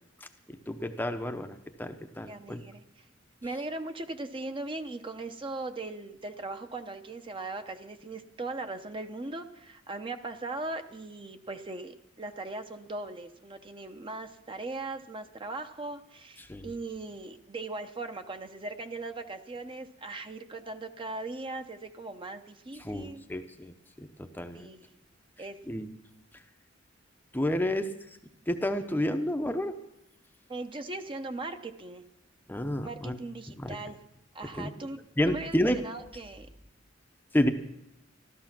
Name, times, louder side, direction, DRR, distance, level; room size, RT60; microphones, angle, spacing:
voice 1, 0.7-2.6 16.5-16.7 22.8-23.7 24.2-24.7 25.7-25.9 27.3-27.9 28.5-29.7 32.5-33.2 33.6-33.8 34.6-34.7 35.2-35.8 37.3-37.5, left 1 dB, 10° left, 6 dB, 0.7 m, -30 dB
voice 2, 2.2-3.1 3.4-23.2 24.5-24.9 25.4-25.6 27.6-27.7 30.5-32.0 32.8-34.0 34.3-36.5, right 2 dB, 25° right, 7 dB, 0.8 m, -39 dB
14.0 x 13.0 x 6.0 m, 0.83 s
head